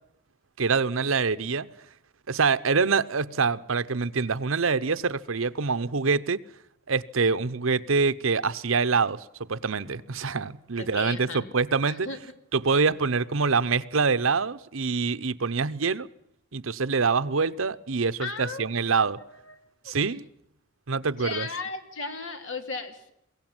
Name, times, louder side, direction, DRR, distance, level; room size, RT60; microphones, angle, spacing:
voice 1, 0.6-1.7 2.3-6.4 6.9-12.1 12.5-16.1 16.5-19.2 19.8-20.3 20.9-21.5, right 4 dB, 85° right, 0.9 m, -25 dB
voice 2, 10.8-11.5 11.9-12.2 18.2-18.9 19.3-19.6 19.8-19.9 21.2-23.1, left 3 dB, 70° left, 2.7 m, -36 dB
22.5 x 17.0 x 9.0 m
head